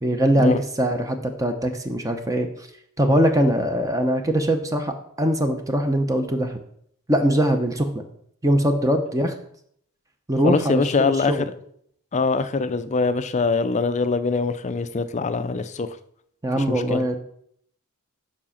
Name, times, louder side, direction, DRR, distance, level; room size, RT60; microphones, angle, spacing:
voice 1, 0.0-2.7 3.0-6.6 7.1-8.0 8.4-9.3 10.3-11.4 16.4-17.2, right 1 dB, 15° right, 0.7 m, -22 dB
voice 2, 10.4-11.5 12.1-16.0 16.6-17.0, left 4 dB, 30° left, 0.4 m, -23 dB
7.4 x 4.9 x 5.7 m
head